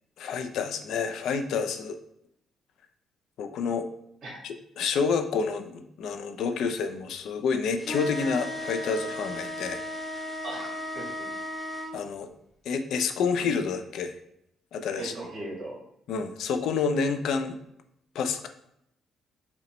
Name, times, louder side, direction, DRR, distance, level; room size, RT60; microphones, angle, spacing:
voice 1, 0.2-2.0 3.4-3.9 4.4-9.8 11.9-12.3 12.7-14.1 14.7-15.1 16.1-17.5 18.1-18.5, left 5 dB, 70° left, 7 dB, 0.4 m, -28 dB
sound 1, 7.8-11.9, left 1 dB, 15° left, 0.6 m, -35 dB
voice 2, 10.4-11.3 15.0-15.8, right 2 dB, 60° right, -2 dB, 1.4 m, -38 dB
5.0 x 2.1 x 3.0 m, 0.76 s
cardioid pair, 130°, 0 cm